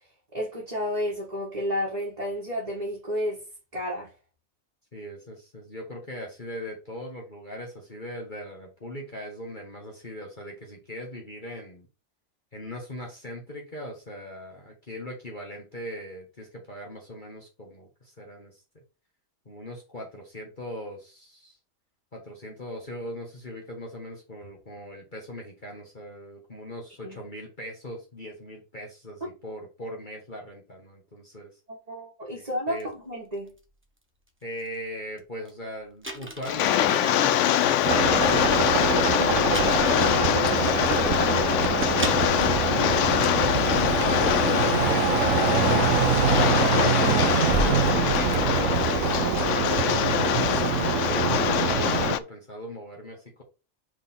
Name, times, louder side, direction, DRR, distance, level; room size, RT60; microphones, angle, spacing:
voice 1, 0.3-3.4 3.7-4.1 27.0-27.2 31.7-33.6, equal, 25° right, 2.0 m, -31 dB
voice 2, 4.9-11.9 12.5-18.6 19.4-21.6 22.1-31.5 32.3-32.9 34.4-41.3 42.0-46.5 47.0-53.4, left 1 dB, 35° left, 1.7 m, -39 dB
sound 1, 32.8-32.9 33.3-33.6 34.3-34.4 34.6-34.8 35.2-35.3 35.5-35.6 36.0-37.8 38.1-39.0 39.5-41.2 41.7-41.8 42.0-44.0 44.3-44.6 45.7-45.8 46.3-49.3, right 1 dB, 10° right, 0.8 m, -37 dB
Rain, 36.5-52.2, left 11 dB, 70° left, 0.8 m, -24 dB
sound 2, 37.8-52.2, right 9 dB, 70° right, 1.0 m, -25 dB
5.0 x 4.2 x 5.4 m
omnidirectional pair, 1.5 m